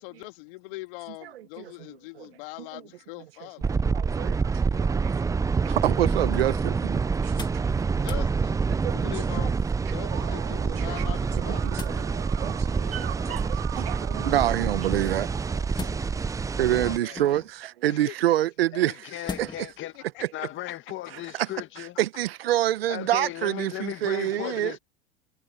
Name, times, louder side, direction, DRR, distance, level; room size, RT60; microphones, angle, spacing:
voice 1, 0.0-3.7 7.9-8.6 8.9-9.6 9.9-11.7 16.7-17.3 17.9-18.2 19.2-19.4 19.8-20.7 24.3-24.8, left 23 dB, 65° left, 1.9 m, -42 dB
sound 1, 3.6-17.0, right 5 dB, 10° right, 0.5 m, -27 dB
voice 2, 3.6-5.1 5.6-7.8 8.7-9.1 9.9-10.2 10.8-10.9 11.5-11.6 12.0-12.5 12.9-15.4 15.8-15.9 16.6-19.1 19.4-19.7 21.3-21.5 21.8-24.7, right 13 dB, 80° right, 1.2 m, -27 dB
sound 2, 7.2-7.7 8.0-8.3 9.4-9.9 11.3-12.0 13.2-13.7 15.7-16.4 17.1-17.6 19.3-19.7 20.2-20.3, left 4 dB, 15° left, 2.2 m, -40 dB
sound 3, 9.9-16.6, right 30 dB, 60° right, 4.5 m, -42 dB
voice 3, 18.7-19.9 20.3-22.0 22.9-24.8, left 15 dB, 40° left, 1.8 m, -36 dB
hypercardioid pair, 100°, 29 cm